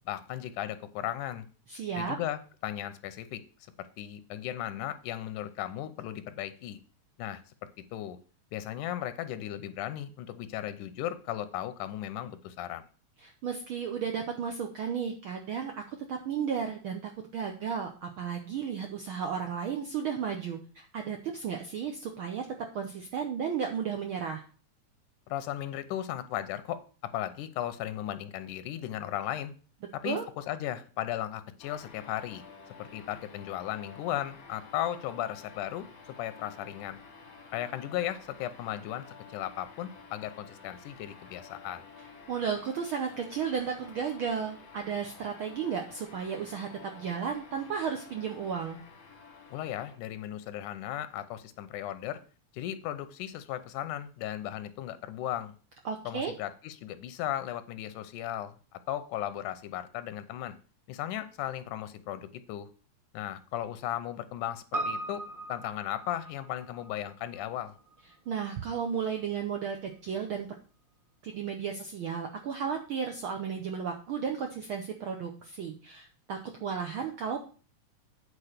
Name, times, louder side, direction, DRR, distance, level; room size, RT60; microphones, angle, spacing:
voice 1, 0.1-1.5 1.9-3.4 3.8-6.8 7.2-7.4 7.9-8.2 8.5-12.9 25.3-29.5 29.9-32.4 32.8-37.0 37.5-41.8 49.5-52.2 52.5-55.5 56.1-60.6 60.9-62.7 63.1-67.8, left 12 dB, 90° left, 12 dB, 2.3 m, -36 dB
voice 2, 1.7-2.2 13.2-22.5 22.7-24.4 30.0-30.3 42.3-48.8 55.8-56.3 68.3-70.5 71.2-77.4, right 7 dB, 80° right, 3 dB, 1.2 m, -34 dB
sound 1, 31.6-50.0, left 5 dB, 50° left, 1.1 m, -51 dB
Piano, 64.7-69.2 69.5-69.6, right 2 dB, 45° right, 0.6 m, -39 dB
8.6 x 4.4 x 6.6 m, 0.38 s
omnidirectional pair, 3.5 m